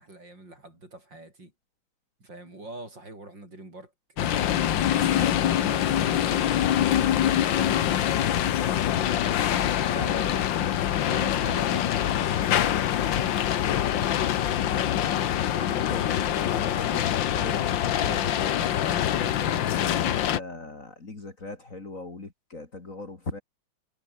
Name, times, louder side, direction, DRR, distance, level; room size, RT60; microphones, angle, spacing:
voice 1, 0.0-1.5 2.2-3.9 6.6-8.4 9.7-10.4 11.0-14.5, right 2 dB, 55° right, 8.8 m, -45 dB
sound 1, 4.2-20.4, left 11 dB, 65° left, 1.7 m, -24 dB
voice 2, 5.5-6.5 9.9-10.5 15.5-23.4, left 3 dB, 35° left, 3.3 m, -39 dB
omnidirectional pair, 2.4 m